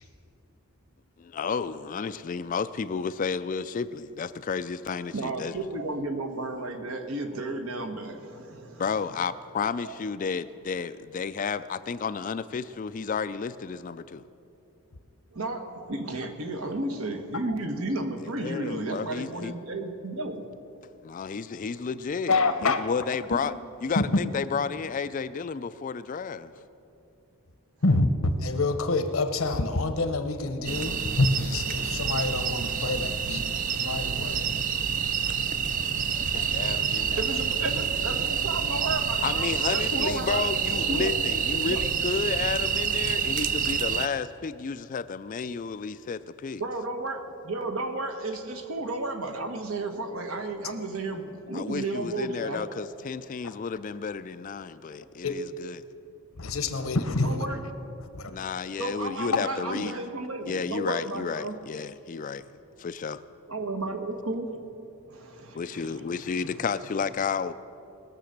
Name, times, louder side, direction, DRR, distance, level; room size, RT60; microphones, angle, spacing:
voice 1, 1.2-5.6 8.8-14.2 18.2-19.5 21.0-23.6 23.8-26.5 36.1-37.4 39.2-46.6 51.5-55.8 58.3-59.9 60.5-62.4 62.8-63.2 65.5-67.5, left 5 dB, 35° left, 13 dB, 0.3 m, -32 dB
voice 2, 5.1-8.8 9.8-9.9 15.3-20.4 34.9-35.3 36.1-41.1 41.7-41.8 46.6-52.7 57.2-57.6 58.8-61.6 63.5-64.6 65.1-66.6, right 2 dB, 75° right, 5 dB, 1.3 m, -33 dB
voice 3, 22.3-22.8 24.0-24.1 27.8-28.1 28.4-33.4 33.7-34.5 36.3-36.5 55.2-55.4 56.4-57.6 58.1-58.3, left 3 dB, 70° left, 9 dB, 0.9 m, -27 dB
sound 1, 30.7-44.1, right 7 dB, 35° right, 0.4 m, -28 dB
20.0 x 6.9 x 6.5 m, 2.6 s
head